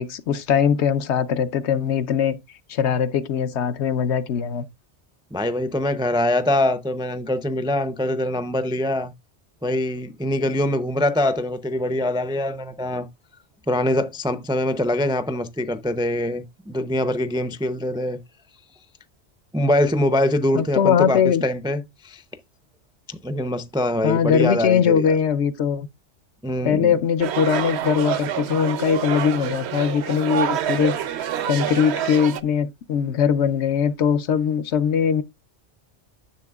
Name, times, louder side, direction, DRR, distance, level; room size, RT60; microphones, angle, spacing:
voice 1, 0.0-2.4 2.7-4.6 20.5-21.4 24.0-25.9 26.6-31.0 31.5-35.2, left 7 dB, 75° left, 1.0 m, -21 dB
voice 2, 5.3-9.1 9.6-13.1 13.7-18.2 19.5-22.2 23.1-25.2 26.4-26.9, left 1 dB, 5° right, 0.3 m, -23 dB
sound 1, 27.2-32.4, right 9 dB, 70° right, 0.9 m, -27 dB
10.5 x 7.1 x 2.3 m
omnidirectional pair, 1.2 m